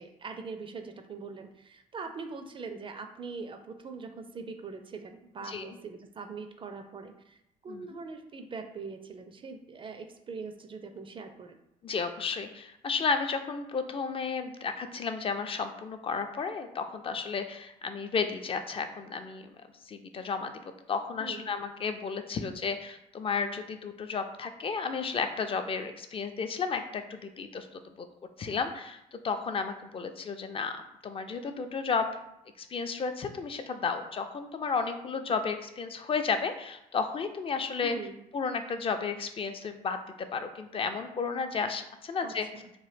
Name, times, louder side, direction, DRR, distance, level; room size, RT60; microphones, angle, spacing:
voice 1, 0.0-7.4 7.6-11.6 21.2-21.5 37.8-38.2 42.2-42.7, right 4 dB, 30° right, 6 dB, 0.4 m, -42 dB
voice 2, 5.4-5.8 7.7-7.8 11.8-19.5 19.9-20.6 20.9-27.7 28.0-28.1 28.4-30.7 31.0-32.2 32.6-38.0 38.3-42.5, left 5 dB, 35° left, 7 dB, 0.4 m, -33 dB
3.0 x 2.1 x 3.2 m, 0.82 s
supercardioid pair, 65°, 17 cm